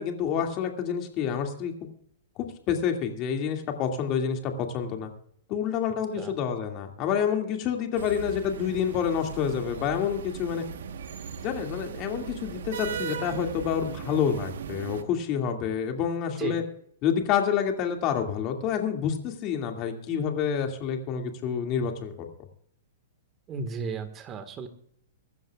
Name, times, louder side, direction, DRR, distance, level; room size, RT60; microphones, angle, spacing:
voice 1, 0.0-1.9 2.4-5.1 5.5-10.6 11.4-16.6 17.0-22.1, left 8 dB, 30° left, 4 dB, 2.3 m, -28 dB
sound 1, 7.9-15.0, right 7 dB, 80° right, 1.2 m, -38 dB
voice 2, 16.2-16.6 23.5-24.7, right 4 dB, 20° right, 8 dB, 1.7 m, -34 dB
24.0 x 13.0 x 2.4 m, 0.64 s
hypercardioid pair, 160°, 0 cm